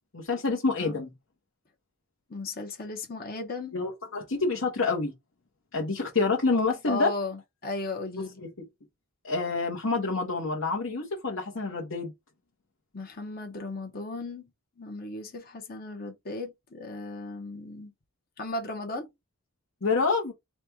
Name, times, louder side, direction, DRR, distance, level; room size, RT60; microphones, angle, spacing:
voice 1, 0.1-1.1 3.7-5.1 5.7-7.1 8.2-8.5 9.2-12.1 19.8-20.3, left 4 dB, 65° left, 1.0 m, -27 dB
voice 2, 2.3-3.8 6.9-8.4 12.9-14.5 14.8-17.9 18.4-19.1, left 2 dB, 40° left, 1.0 m, -36 dB
4.2 x 2.3 x 4.5 m
head